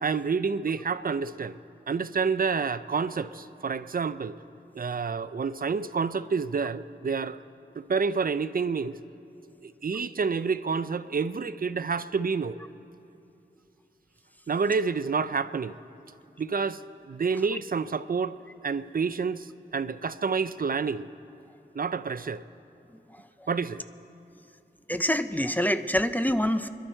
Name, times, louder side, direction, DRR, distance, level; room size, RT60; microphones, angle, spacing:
voice 1, 0.0-1.6 1.9-4.4 4.7-7.4 7.8-9.0 9.6-12.6 14.5-15.8 16.4-16.8 17.1-18.4 18.6-21.1 21.7-22.4 23.5-23.8, right 5 dB, 55° right, 14 dB, 0.4 m, -28 dB
voice 2, 23.1-23.5 24.9-26.7, equal, 10° left, 10 dB, 0.5 m, -26 dB
26.0 x 11.5 x 4.4 m, 2.8 s
wide cardioid pair, 80°, 18 cm